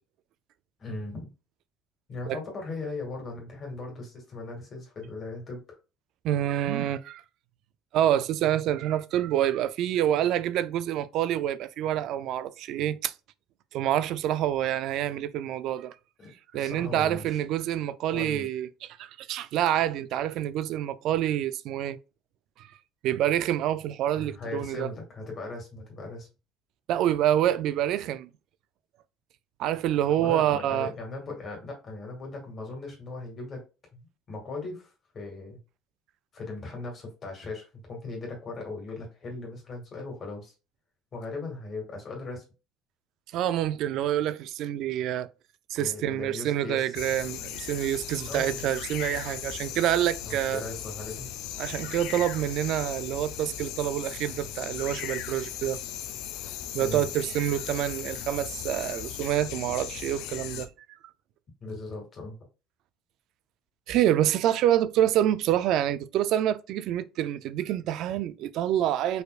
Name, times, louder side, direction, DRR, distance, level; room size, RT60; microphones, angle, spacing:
voice 1, 0.8-1.3 2.1-5.8 16.2-17.4 18.1-18.5 24.1-26.3 30.2-33.6 33.9-35.6 36.3-40.5 41.1-42.4 45.8-47.0 48.3-48.6 50.2-51.3 56.8-57.1 61.6-62.4, left 3 dB, 30° left, 2.0 m, -38 dB
voice 2, 6.2-7.2 7.9-13.1 13.7-15.9 16.5-22.0 22.6-22.7 23.0-24.9 26.9-28.3 29.6-30.9 43.3-45.3 45.7-50.6 51.6-55.8 56.7-60.7 63.9-69.2, right 11 dB, 55° right, 0.4 m, -27 dB
sound 1, 46.9-60.7, left 11 dB, 70° left, 0.6 m, -37 dB
5.2 x 4.3 x 2.4 m
cardioid pair, 170°, 0 cm